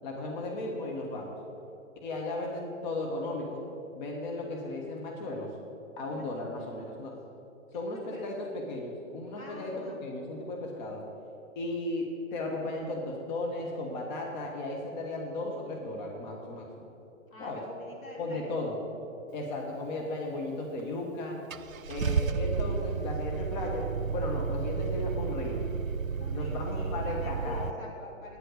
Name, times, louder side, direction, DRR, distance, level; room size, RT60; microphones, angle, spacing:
voice 1, 0.0-1.4 2.0-3.6 3.9-5.5 6.0-7.1 7.7-11.0 11.5-16.9 17.4-17.6 18.2-18.7 19.3-21.4 21.9-25.6 26.3-27.7, left 2 dB, 35° left, 0 dB, 1.5 m, -35 dB
voice 2, 6.1-7.1 7.8-8.4 9.3-10.0 17.3-18.7 26.2-28.4, left 1 dB, 85° left, -2 dB, 3.0 m, -46 dB
Car / Engine starting, 20.8-20.9 21.5-27.7, right 5 dB, 85° right, 0.5 m, -32 dB
9.7 x 8.0 x 6.6 m, 2.8 s
figure-of-eight pair, 125°, 40 cm